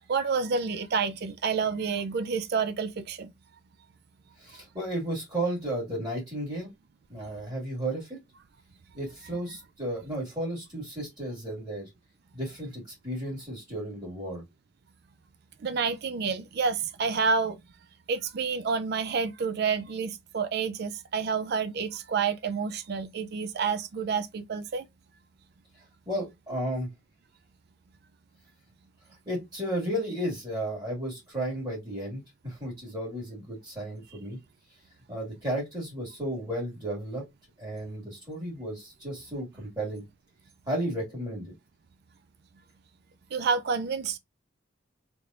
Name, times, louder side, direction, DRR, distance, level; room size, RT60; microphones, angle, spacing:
voice 1, 0.1-3.3 15.6-17.6 18.1-24.8 43.3-44.2, right 5 dB, 55° right, 0.4 m, -29 dB
voice 2, 4.4-6.7 7.1-8.2 8.9-11.9 12.3-14.4 26.1-26.9 29.3-34.4 35.1-37.2 37.6-40.0 40.7-41.5, right 1 dB, 20° right, 2.1 m, -33 dB
3.4 x 3.3 x 2.5 m
head